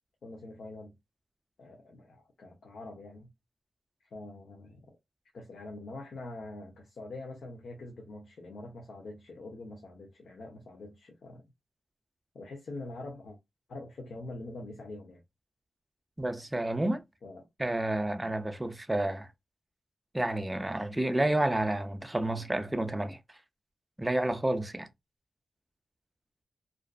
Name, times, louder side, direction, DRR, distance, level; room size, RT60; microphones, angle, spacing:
voice 1, 0.2-0.9 1.6-3.3 4.1-4.9 5.3-11.4 12.3-13.4 13.7-15.2 17.2-17.5, left 2 dB, 80° left, 0.6 m, -44 dB
voice 2, 16.2-17.0 17.6-19.3 20.1-23.2 24.0-24.9, right 1 dB, 10° right, 0.3 m, -30 dB
2.5 x 2.4 x 2.2 m
wide cardioid pair, 175°, 0 cm